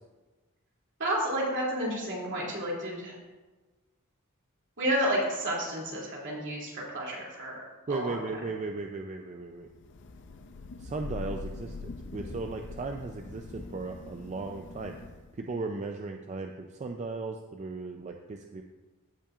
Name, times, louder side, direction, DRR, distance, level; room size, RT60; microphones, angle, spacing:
voice 1, 1.0-3.1 4.8-7.6 7.9-8.2, right 1 dB, 60° right, -4 dB, 2.7 m, -31 dB
voice 2, 7.9-9.7 10.8-14.9 15.3-18.6, right 3 dB, 35° right, 4 dB, 0.4 m, -36 dB
Thunder / Rain, 9.7-15.5, left 3 dB, 60° left, 0.6 m, -43 dB
15.0 x 5.7 x 2.4 m, 1.2 s
head